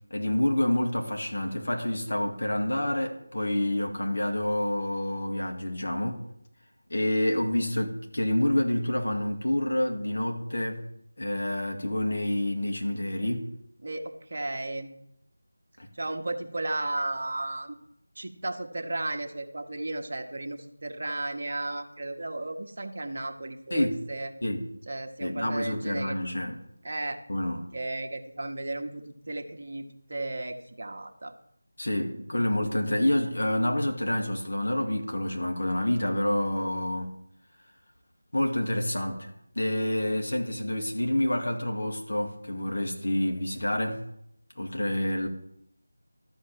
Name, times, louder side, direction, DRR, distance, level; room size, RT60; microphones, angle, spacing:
voice 1, 0.1-6.2 6.9-10.8 11.2-13.5 15.8-15.9 23.7-24.0 24.4-24.7 25.2-26.6 27.3-27.6 31.8-37.2 38.3-39.3 39.6-44.0 44.6-45.3, left 1 dB, 55° left, 2.2 m, -28 dB
voice 2, 13.8-14.9 15.9-17.8 18.2-24.3 24.9-26.3 26.8-27.2 27.7-31.3, right 2 dB, 45° right, 1.2 m, -34 dB
12.5 x 5.3 x 7.5 m
figure-of-eight pair, 165°, 0 cm